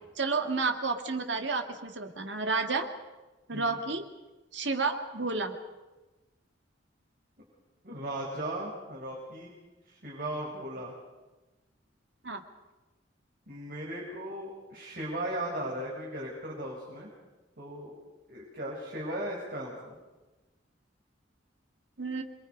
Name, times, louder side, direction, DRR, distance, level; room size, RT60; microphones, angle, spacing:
voice 1, 0.2-2.9 3.5-4.0 4.5-5.6 12.2-12.4 22.0-22.2, right 4 dB, 70° right, 5 dB, 2.2 m, -30 dB
voice 2, 7.8-9.5 9.9-10.9 13.5-17.1 17.6-17.9 18.3-19.9, right 1 dB, 55° right, -3 dB, 5.5 m, -37 dB
28.0 x 24.0 x 5.3 m, 1.1 s
head